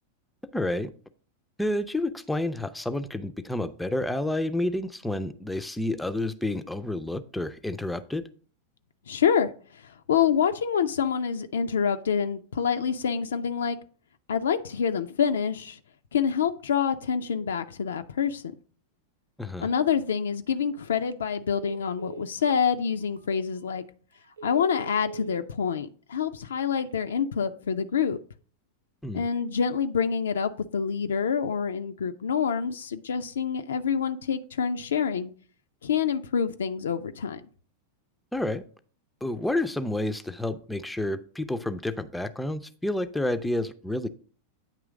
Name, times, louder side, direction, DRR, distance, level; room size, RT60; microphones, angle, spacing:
voice 1, 0.5-0.9 1.6-8.2 19.4-19.7 29.0-29.3 38.3-38.6 39.2-44.1, left 1 dB, 5° left, 0.4 m, -29 dB
voice 2, 9.1-9.5 10.1-13.8 14.3-15.8 16.1-18.4 19.6-23.8 24.4-28.2 29.1-35.3 35.8-37.4, left 7 dB, 65° left, 0.4 m, -26 dB
Telephone, 21.0-21.2 21.5-22.6 23.2-23.3 23.7-23.8 24.2-25.4 26.6-27.2, right 6 dB, 70° right, 0.4 m, -43 dB
9.0 x 3.0 x 4.8 m
figure-of-eight pair, 90°, 0 cm